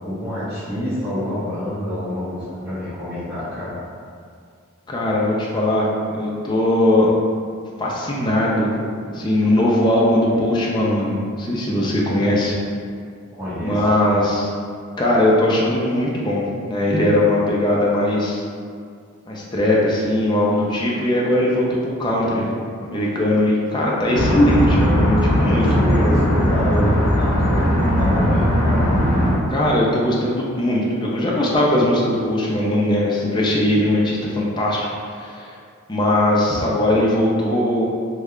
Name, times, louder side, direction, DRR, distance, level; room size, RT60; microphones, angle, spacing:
voice 1, 0.0-3.7 13.3-13.9 25.5-27.6 27.9-28.8, equal, 15° right, -15 dB, 0.8 m, -26 dB
voice 2, 4.9-7.1 7.8-8.7 9.1-12.5 13.6-14.5 15.0-18.4 19.3-22.5 22.8-25.7 29.5-35.5 35.9-37.8, left 1 dB, 20° left, -4 dB, 0.4 m, -19 dB
sound 1, 24.1-29.3, equal, 80° left, 0.6 m, -18 dB
3.2 x 2.3 x 3.6 m, 2.2 s
head